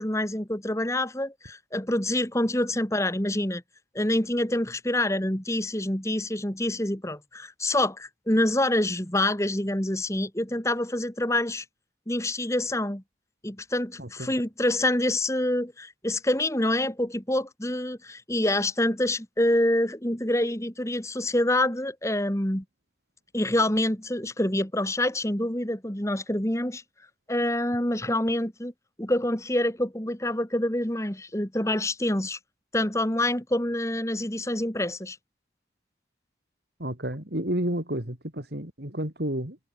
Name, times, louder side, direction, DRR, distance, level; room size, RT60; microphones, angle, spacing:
voice 1, 0.0-3.6 3.9-11.6 12.1-13.0 13.4-22.6 23.3-26.8 27.3-28.7 29.0-32.4 32.7-35.2, left 1 dB, 15° left, 2.3 m, -26 dB
voice 2, 14.0-14.3 36.8-39.6, right 1 dB, 65° right, 3.9 m, -31 dB
head